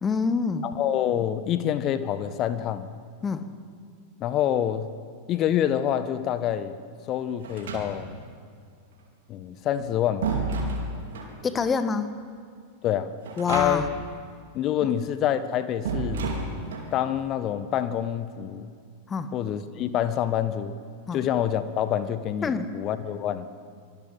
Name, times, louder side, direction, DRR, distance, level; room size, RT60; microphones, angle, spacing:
voice 1, 0.0-0.7 3.2-3.5 11.4-12.1 13.4-13.9 14.8-14.9 19.1-19.3 21.1-21.2 22.4-22.7, left 5 dB, 20° left, 10 dB, 1.8 m, -26 dB
voice 2, 0.6-2.9 4.2-4.9 5.3-6.7 7.1-8.1 9.3-10.3 12.8-13.1 13.5-13.9 14.5-16.3 16.9-18.7 19.3-20.8 21.1-23.5, left 10 dB, 35° left, 12 dB, 1.4 m, -26 dB
sound 1, 7.4-8.3 9.6-11.4 13.2-14.1 14.3-14.4 15.8-17.0, right 3 dB, 60° right, 4.5 m, -31 dB
25.5 x 23.5 x 7.9 m, 2.1 s
figure-of-eight pair, 90°, 0 cm